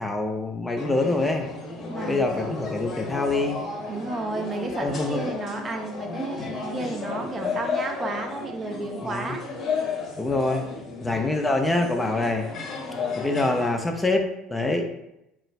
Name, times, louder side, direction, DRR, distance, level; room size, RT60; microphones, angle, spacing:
voice 1, 0.0-1.5 2.0-3.6 4.8-5.2 9.0-9.3 10.2-10.7 11.0-12.5 13.2-14.9, left 2 dB, 15° left, 4 dB, 0.5 m, -25 dB
sound 1, 0.8-13.8, left 4 dB, 45° left, 0.8 m, -33 dB
voice 2, 1.9-2.3 3.9-9.4, right 3 dB, 30° right, 4 dB, 0.6 m, -32 dB
3.7 x 2.5 x 3.2 m, 0.85 s
figure-of-eight pair, 60°, 0 cm